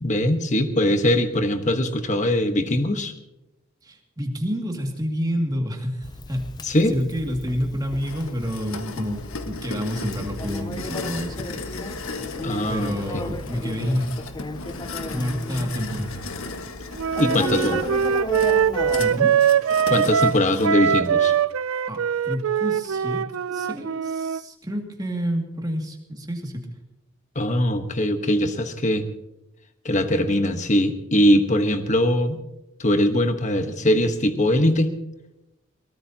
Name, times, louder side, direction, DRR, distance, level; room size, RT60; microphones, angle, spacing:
voice 1, 0.0-3.1 6.6-6.9 12.4-13.2 17.2-17.9 19.9-21.3 27.3-29.1 29.8-32.4 32.8-34.9, left 1 dB, 35° left, 8 dB, 1.3 m, -21 dB
voice 2, 3.8-6.6 6.9-11.8 12.7-14.1 15.1-16.2 19.0-19.4 21.9-26.8, equal, 20° right, 2 dB, 2.3 m, -29 dB
Conversation, 6.0-19.2, left 2 dB, 20° left, 0.4 m, -35 dB
sound 1, 8.0-20.7, left 3 dB, 75° left, 1.5 m, -36 dB
Wind instrument woodwind instrument, 17.0-24.4, right 7 dB, 75° right, 0.4 m, -22 dB
22.5 x 19.0 x 2.9 m, 0.93 s
head